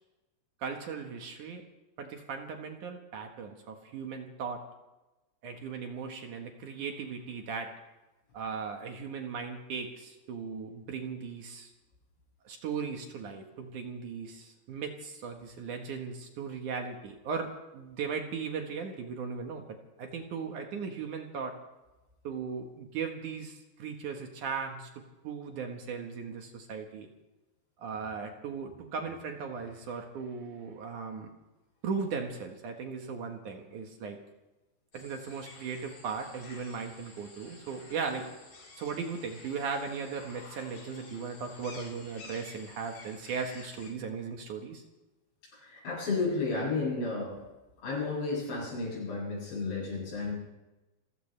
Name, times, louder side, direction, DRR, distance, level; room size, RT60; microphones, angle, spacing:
voice 1, 0.6-1.6 2.0-4.6 5.4-7.7 8.3-11.7 12.4-21.6 22.2-24.9 25.2-27.1 27.8-31.3 31.8-34.2 34.9-38.3 38.8-44.8, right 5 dB, 60° right, 4 dB, 2.2 m, -37 dB
sound 1, 34.9-43.9, left 3 dB, 50° left, 5.8 m, -51 dB
voice 2, 45.5-47.4 47.8-50.3, left 3 dB, 75° left, -7 dB, 10.5 m, -32 dB
28.5 x 15.0 x 3.3 m, 1.1 s
omnidirectional pair, 5.2 m